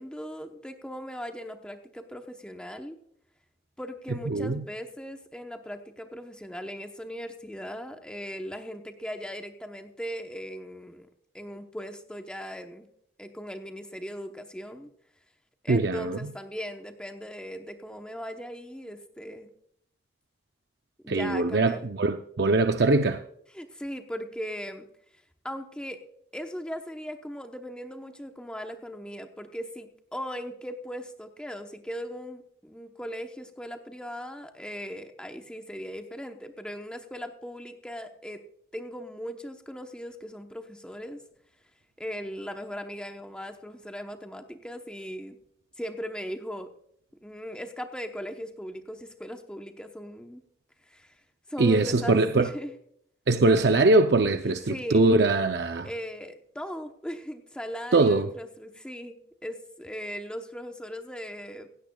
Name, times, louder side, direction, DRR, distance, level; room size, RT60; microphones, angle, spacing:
voice 1, 0.0-3.0 3.8-11.1 11.3-12.9 13.2-14.9 15.6-19.5 21.0-21.9 23.5-24.9 25.4-26.0 26.3-38.4 38.7-41.2 42.0-45.4 45.8-46.7 47.2-50.4 50.9-51.2 51.5-52.7 54.7-55.1 55.8-61.8, equal, 5° left, 0.9 m, -38 dB
voice 2, 4.3-4.6 15.7-16.3 21.1-23.2 51.6-52.5 53.3-55.9 57.9-58.3, right 2 dB, 75° right, 0.6 m, -22 dB
16.5 x 16.0 x 2.3 m
head